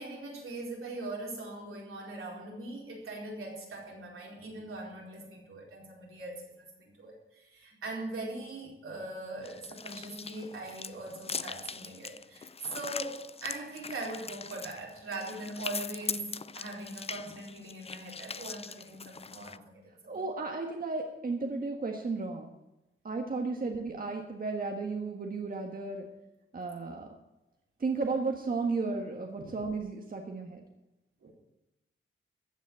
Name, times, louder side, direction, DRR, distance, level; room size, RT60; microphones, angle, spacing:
voice 1, 0.0-20.2 29.4-29.6 31.2-31.3, right 2 dB, 80° right, -2 dB, 4.4 m, -41 dB
sound 1, 9.4-19.6, left 5 dB, 30° left, 0.4 m, -41 dB
voice 2, 20.1-22.5 23.0-26.0 26.5-27.1 27.8-30.6, right 3 dB, 45° right, 2 dB, 1.6 m, -34 dB
14.5 x 6.3 x 9.4 m, 0.95 s
wide cardioid pair, 110°, 21 cm